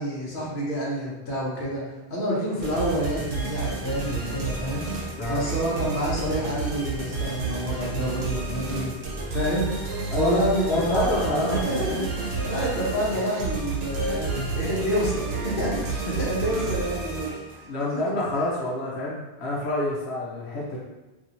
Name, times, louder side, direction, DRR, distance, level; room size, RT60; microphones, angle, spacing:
voice 1, 0.0-1.8 2.1-4.9 5.3-8.9 9.3-9.7 10.1-17.7 18.1-18.5, equal, 55° left, -5 dB, 1.0 m, -28 dB
sound 1, 2.6-17.6, right 4 dB, 75° right, 0.9 m, -30 dB
voice 2, 10.1-12.1 17.6-20.8, left 1 dB, 85° left, -5 dB, 1.0 m, -28 dB
2.8 x 2.7 x 2.6 m, 1.1 s
omnidirectional pair, 1.1 m